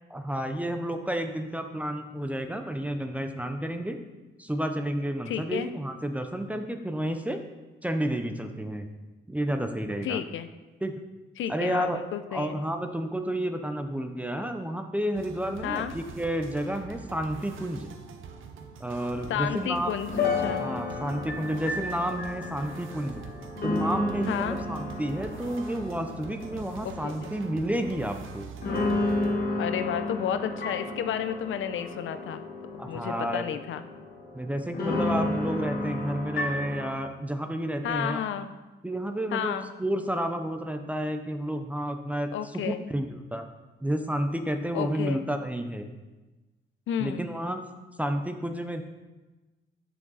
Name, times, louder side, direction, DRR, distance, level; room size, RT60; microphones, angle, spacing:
voice 1, 0.1-4.0 4.4-7.4 7.8-8.9 9.3-10.2 10.8-11.0 11.5-12.0 12.3-17.9 18.8-19.9 20.4-23.2 23.6-28.5 32.8-33.4 34.3-38.2 38.8-43.5 43.8-45.9 47.0-47.7 48.0-48.8, right 1 dB, 5° right, 6 dB, 0.4 m, -31 dB
voice 2, 5.3-5.7 10.0-10.5 11.4-12.6 15.6-15.9 19.3-20.6 24.3-24.6 26.8-27.3 29.6-32.5 32.7-33.8 37.8-38.5 39.3-39.7 42.3-42.8 44.7-45.2 46.9-47.2, left 9 dB, 75° left, 10 dB, 0.5 m, -32 dB
sound 1, 15.1-29.4, right 6 dB, 80° right, 0.7 m, -44 dB
sound 2, 19.3-28.2 28.6-36.9, left 2 dB, 50° left, 1.2 m, -32 dB
7.4 x 6.1 x 4.0 m, 1.1 s
wide cardioid pair, 165°, 20 cm